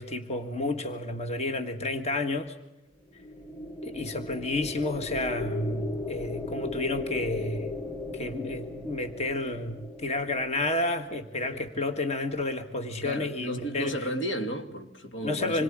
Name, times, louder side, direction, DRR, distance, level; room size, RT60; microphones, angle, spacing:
voice 1, 0.0-2.6 3.8-7.8 8.1-14.0 15.2-15.6, left 2 dB, 35° left, 1.8 m, -31 dB
sound 1, 3.0-11.4, left 3 dB, 15° left, 3.8 m, -37 dB
voice 2, 13.0-15.6, equal, 75° left, 2.8 m, -33 dB
27.0 x 22.5 x 8.8 m
head